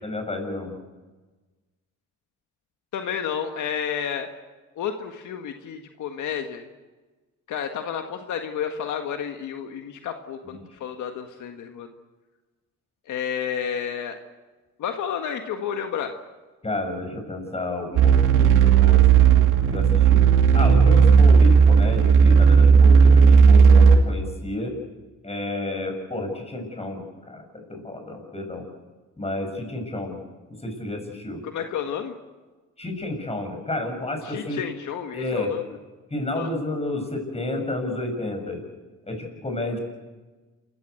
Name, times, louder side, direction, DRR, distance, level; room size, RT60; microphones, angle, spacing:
voice 1, 0.0-0.7 10.5-10.6 16.6-20.2 20.5-24.8 25.2-28.6 29.2-30.2 30.6-31.4 32.8-34.6 35.1-35.5 36.1-38.6 39.1-39.8, left 2 dB, 20° left, 3 dB, 7.0 m, -31 dB
voice 2, 2.9-4.3 4.8-6.7 7.5-11.9 13.1-14.2 14.8-16.1 31.4-32.1 34.2-35.6 36.3-36.5, left 8 dB, 75° left, 5 dB, 1.7 m, -31 dB
sound 1, 17.9-24.0, right 6 dB, 90° right, 2.7 m, -14 dB
27.5 x 15.5 x 8.1 m, 1.3 s
cardioid pair, 90°, 30 cm